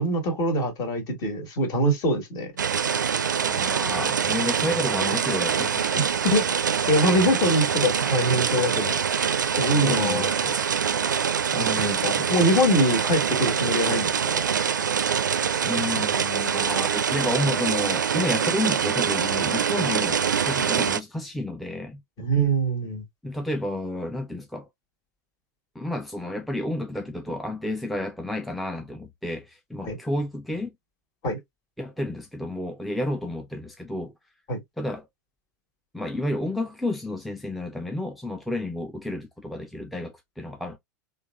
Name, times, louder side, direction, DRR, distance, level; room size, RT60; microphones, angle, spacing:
voice 1, 0.0-2.5 5.9-9.0 9.6-10.3 11.6-14.5 22.2-23.0 29.8-30.0 31.2-31.4 34.5-34.6, equal, 40° left, 1.6 m, -24 dB
sound 1, 2.6-21.0, right 7 dB, 80° right, 0.4 m, -24 dB
voice 2, 3.4-6.1 9.8-10.6 11.5-12.3 15.6-22.0 23.2-24.7 25.8-30.8 31.8-34.1 34.8-35.1 35.9-40.8, left 1 dB, ahead, 0.4 m, -31 dB
3.7 x 2.5 x 2.4 m
figure-of-eight pair, 90°, 10 cm